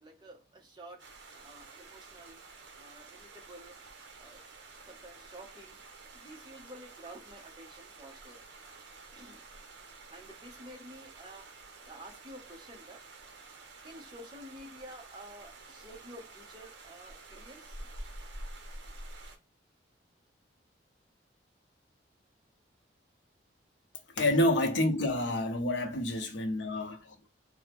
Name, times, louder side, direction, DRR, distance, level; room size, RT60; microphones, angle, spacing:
voice 1, 0.0-1.0 1.4-2.4 2.8-3.7 4.2-4.4 4.8-5.8 6.1-8.5 9.1-9.4 10.1-11.5 11.8-13.0 13.8-17.9 26.6-26.7, right 1 dB, 25° right, 0.6 m, -50 dB
sound 1, 1.0-19.4, right 2 dB, 70° right, 0.6 m, -50 dB
voice 2, 24.1-27.3, left 1 dB, 75° left, 0.7 m, -28 dB
2.6 x 2.0 x 3.3 m
head